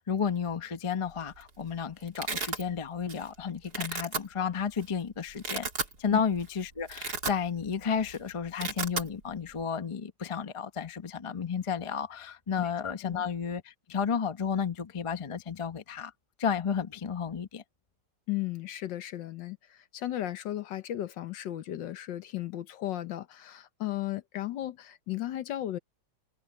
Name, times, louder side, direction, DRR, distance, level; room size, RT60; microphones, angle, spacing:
voice 1, 0.0-5.7 6.0-16.1 16.4-17.6, left 6 dB, 35° left, 0.5 m, -32 dB
Domestic sounds home sounds, 1.1-1.5 1.8-2.6 3.1-3.3 3.6-4.2 4.8-4.9 5.3-5.9 6.4-6.5 6.8-7.7 8.0-8.2 8.4-9.1, right 4 dB, 50° right, 3.1 m, -34 dB
voice 2, 18.3-25.8, left 13 dB, 70° left, 1.5 m, -35 dB
omnidirectional pair, 2.2 m